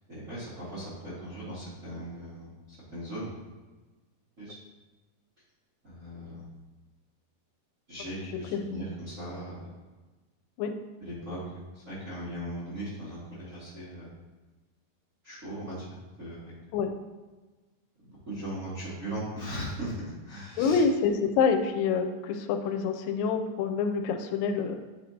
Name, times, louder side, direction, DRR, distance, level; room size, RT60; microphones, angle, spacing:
voice 1, 0.1-3.3 4.4-4.6 5.8-6.4 7.9-9.7 11.0-11.4 11.7-14.1 15.2-15.8 16.2-16.5 18.0-20.8, right 1 dB, 40° right, -11 dB, 1.1 m, -38 dB
voice 2, 8.3-8.8 10.6-10.7 16.7-16.9 20.6-24.8, left 5 dB, 85° left, 6 dB, 2.3 m, -27 dB
8.8 x 4.3 x 2.7 m, 1.3 s
omnidirectional pair, 3.9 m